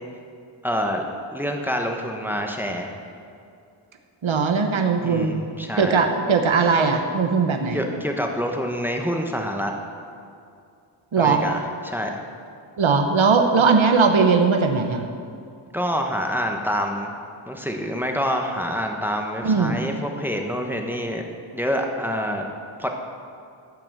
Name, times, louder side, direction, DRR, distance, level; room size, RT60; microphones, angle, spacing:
voice 1, 0.6-1.0 1.3-2.9 5.0-6.0 7.7-9.7 11.2-12.2 15.7-17.1 17.5-21.3 21.5-22.5 22.8-22.9, equal, 5° right, 2 dB, 1.2 m, -27 dB
voice 2, 4.2-5.4 5.8-7.9 11.1-11.4 12.8-15.0 19.4-19.8, right 5 dB, 75° right, 5 dB, 1.1 m, -19 dB
14.0 x 5.9 x 7.5 m, 2.5 s
wide cardioid pair, 80°, 48 cm